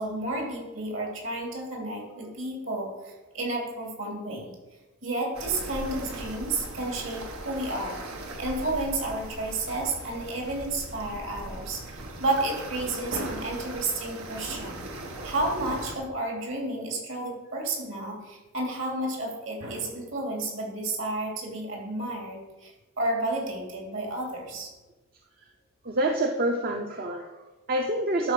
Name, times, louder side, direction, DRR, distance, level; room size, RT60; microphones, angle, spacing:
voice 1, 0.0-4.5 5.0-8.0 8.4-14.8 15.2-24.7, right 2 dB, 65° right, 0 dB, 2.9 m, -31 dB
sound 1, 5.3-16.0, right 2 dB, 90° right, 1.5 m, -39 dB
voice 2, 25.8-28.3, right 1 dB, 45° right, 3 dB, 0.6 m, -27 dB
11.0 x 4.5 x 6.6 m, 1.1 s
head